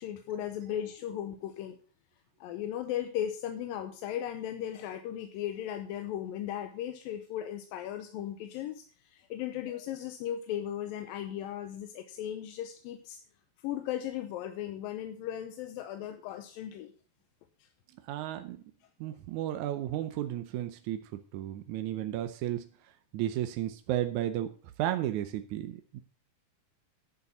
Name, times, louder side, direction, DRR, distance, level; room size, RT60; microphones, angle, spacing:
voice 1, 0.0-1.8 2.4-13.2 13.6-16.9 17.6-17.7, left 11 dB, 85° left, 6 dB, 2.5 m, -37 dB
voice 2, 18.1-18.6 19.0-21.0 21.3-22.7 23.1-24.5 24.8-26.0, right 12 dB, 75° right, 8 dB, 1.8 m, -33 dB
11.0 x 6.9 x 5.5 m, 0.40 s
omnidirectional pair, 4.1 m